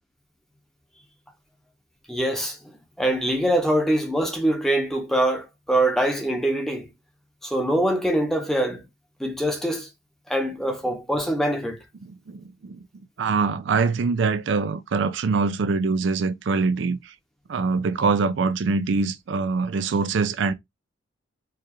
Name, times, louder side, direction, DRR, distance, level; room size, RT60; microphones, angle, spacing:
voice 1, 2.1-2.6 3.0-6.9 7.4-8.8 9.2-9.9 10.3-11.8, right 1 dB, ahead, 0.7 m, -23 dB
voice 2, 12.3-12.8 13.2-17.1 17.5-20.5, right 4 dB, 60° right, 0.4 m, -24 dB
4.5 x 2.4 x 3.0 m
head